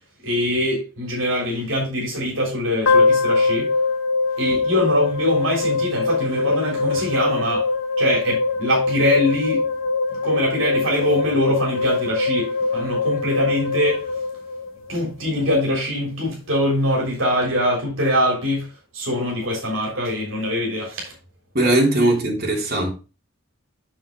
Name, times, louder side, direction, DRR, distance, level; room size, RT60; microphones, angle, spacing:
voice 1, 0.2-3.7 4.4-7.7 8.0-9.6 10.1-14.1 14.9-18.7 18.9-21.1, left 1 dB, 75° right, 3.5 m, -23 dB
sound 1, 2.9-15.1, left 3 dB, 80° left, 1.6 m, -22 dB
voice 2, 21.5-22.9, right 1 dB, 50° right, 3.3 m, -19 dB
7.2 x 7.1 x 3.8 m
head